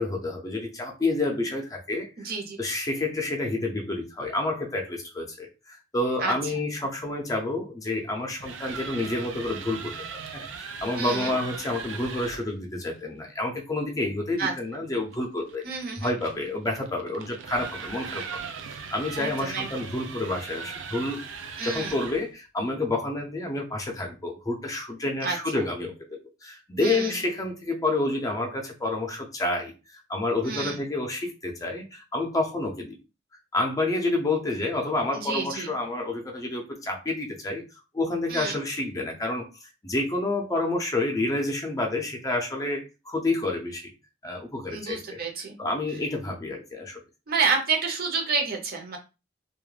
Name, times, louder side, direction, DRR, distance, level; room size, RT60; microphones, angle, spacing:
voice 1, 0.0-2.3 2.6-15.6 16.0-21.3 21.6-29.7 30.1-33.0 33.5-37.6 37.9-39.5 39.8-43.9 44.2-45.2 45.6-47.0, left 2 dB, 20° left, 1 dB, 0.5 m, -29 dB
voice 2, 2.2-2.6 6.2-6.3 11.0-11.3 14.4-14.5 15.6-16.1 19.2-19.9 21.6-22.0 25.2-25.6 26.8-27.2 30.4-30.8 35.1-35.7 38.3-38.6 44.7-45.6 46.2-46.3 47.3-49.0, right 4 dB, 50° right, 3 dB, 0.7 m, -29 dB
sound 1, 8.2-12.5 15.1-22.3, right 5 dB, 90° right, 0.4 m, -39 dB
2.2 x 2.0 x 3.1 m, 0.29 s
head